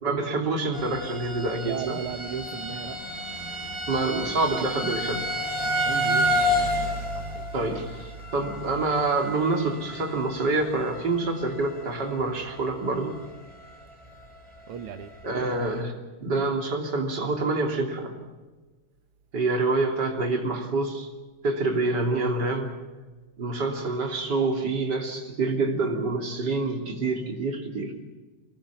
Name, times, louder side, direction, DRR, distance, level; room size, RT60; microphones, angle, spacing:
voice 1, 0.0-2.0 3.9-5.3 7.5-13.1 15.2-15.9 16.2-18.1 19.3-21.1 21.4-22.7 23.4-27.9, right 3 dB, 30° right, 2 dB, 3.3 m, -27 dB
sound 1, 0.7-11.4 11.7-12.2 12.7-12.8 13.1-13.2, equal, 10° right, 2.3 m, -30 dB
voice 2, 1.6-3.0 5.6-7.4 14.7-15.1, right 8 dB, 60° right, 6 dB, 1.5 m, -36 dB
24.5 x 19.0 x 7.0 m, 1.2 s
omnidirectional pair, 3.8 m